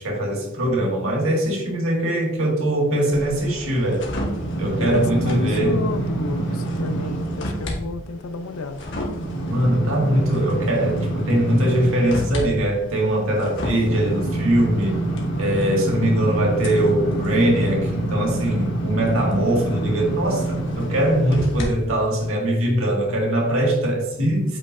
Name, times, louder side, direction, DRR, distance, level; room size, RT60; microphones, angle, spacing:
voice 1, 0.0-4.0 4.6-5.8 9.5-15.0 15.4-24.6, right 1 dB, 70° right, 2.0 m, -21 dB
sound 1, 3.1-7.7 8.1-21.6 22.1-22.3, right 1 dB, 60° left, 1.5 m, -27 dB
voice 2, 4.8-8.8, left 3 dB, 75° left, 0.6 m, -30 dB
8.4 x 5.5 x 2.6 m
head